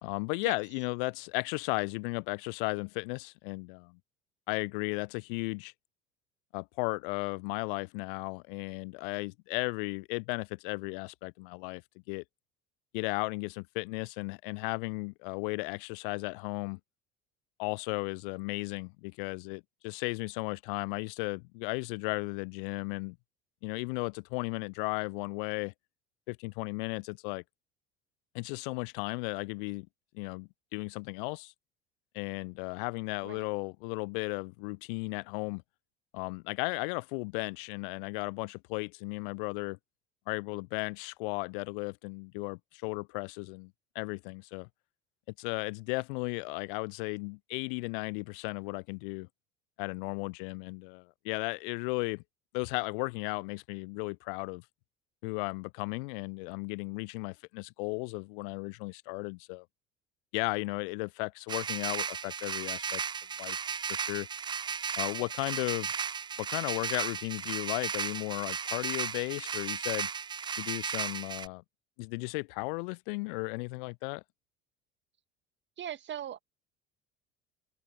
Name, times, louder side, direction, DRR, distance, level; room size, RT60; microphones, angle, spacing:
voice 1, 0.0-4.0 4.5-5.7 6.5-11.8 12.1-12.2 12.9-16.8 17.6-23.2 23.6-25.7 26.3-27.4 28.3-29.9 30.1-31.5 32.1-35.6 36.1-39.8 40.3-44.7 45.4-49.3 49.8-52.2 52.5-54.6 55.2-59.6 60.3-63.0 63.4-63.6 63.9-64.3 65.0-65.9 66.4-70.1 70.6-71.6 72.0-74.2, left 30 dB, 60° left, 0.5 m, -35 dB
sound 1, 61.5-71.5, right 6 dB, 15° right, 0.4 m, -35 dB
voice 2, 75.8-76.4, right 10 dB, 35° right, 1.9 m, -39 dB
open air
figure-of-eight pair, 65°, 31 cm